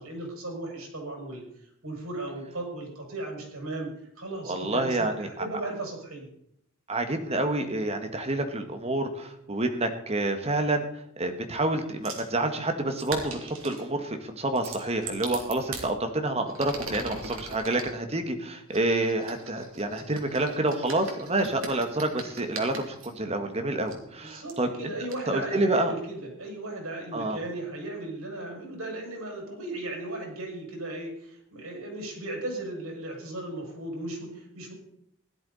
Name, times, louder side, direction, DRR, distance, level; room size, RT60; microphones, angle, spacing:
voice 1, 0.0-1.4 1.8-6.3 24.2-34.7, right 2 dB, 90° right, 0 dB, 6.2 m, -36 dB
voice 2, 4.4-5.4 6.9-10.9 11.2-24.9 25.3-25.9 27.1-27.4, right 2 dB, 30° right, 6 dB, 1.7 m, -28 dB
sound 1, 12.0-12.3 13.0-13.9 14.6-15.9 16.5-17.9 18.7-23.1 23.9-24.0 24.5-24.6 25.1-25.2, right 4 dB, 65° right, 2.8 m, -40 dB
16.0 x 11.5 x 4.2 m, 0.73 s
head